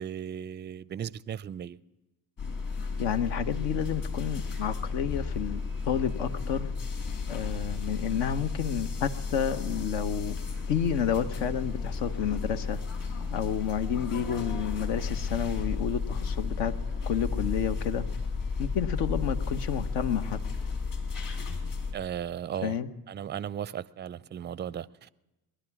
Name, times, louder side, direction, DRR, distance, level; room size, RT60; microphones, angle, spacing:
voice 1, 0.0-1.8 21.9-22.8 23.1-25.1, right 9 dB, 25° right, 0.5 m, -36 dB
sound 1, 2.4-21.9, left 4 dB, 45° left, 3.6 m, -33 dB
voice 2, 3.0-6.7 7.3-10.4 10.7-12.8 13.3-16.7 17.1-18.0 18.6-20.4 22.6-22.9, left 8 dB, 65° left, 1.1 m, -30 dB
sound 2, 5.4-7.8 8.2-8.5 8.9-19.2, equal, 90° left, 5.3 m, -58 dB
21.0 x 11.5 x 5.9 m
hypercardioid pair, 55°, 47 cm